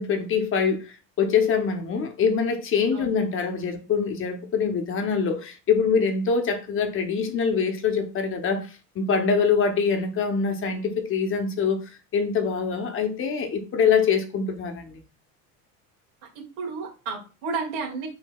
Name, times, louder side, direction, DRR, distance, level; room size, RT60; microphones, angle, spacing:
voice 1, 0.0-15.0, left 6 dB, 35° left, 0.8 m, -24 dB
voice 2, 16.3-18.1, right 4 dB, 85° right, 2.2 m, -32 dB
4.4 x 3.9 x 2.3 m
cardioid pair, 135°, 38 cm